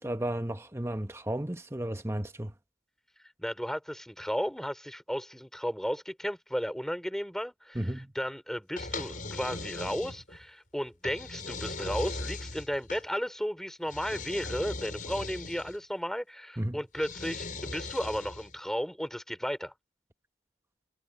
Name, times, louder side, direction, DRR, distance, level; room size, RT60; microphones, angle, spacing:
voice 1, 0.0-2.5 7.7-8.1 16.6-16.8, right 1 dB, 15° right, 1.0 m, -33 dB
voice 2, 3.4-19.7, equal, 5° left, 3.4 m, -34 dB
sound 1, 8.8-10.4 11.0-13.1 13.9-15.8 17.0-18.6, left 3 dB, 50° left, 6.2 m, -39 dB
head